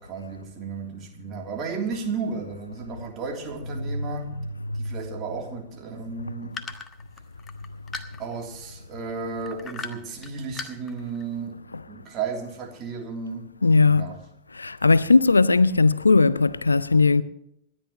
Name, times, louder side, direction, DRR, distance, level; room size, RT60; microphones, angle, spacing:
voice 1, 0.0-4.4 4.7-6.6 8.2-11.5 11.9-13.5 13.8-14.2, right 4 dB, 35° right, 3.1 m, -33 dB
sound 1, 6.5-8.6 9.4-10.3 10.5-11.2, left 5 dB, 25° left, 1.2 m, -37 dB
voice 2, 13.6-14.1 14.6-17.2, left 4 dB, 80° left, 0.5 m, -18 dB
28.0 x 11.0 x 3.1 m
figure-of-eight pair, 90°, 0 cm